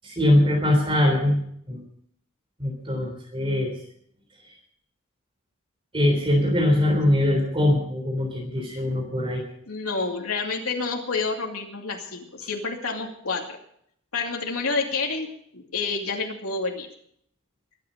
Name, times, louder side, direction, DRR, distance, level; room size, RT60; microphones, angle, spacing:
voice 1, 0.0-1.4 1.7-1.8 2.6-3.7 5.9-9.4, left 1 dB, 25° right, 1 dB, 3.5 m, -22 dB
voice 2, 9.7-13.6 14.1-15.3 15.5-16.9, left 4 dB, 80° left, 0 dB, 2.6 m, -29 dB
23.5 x 9.1 x 5.2 m, 0.68 s
head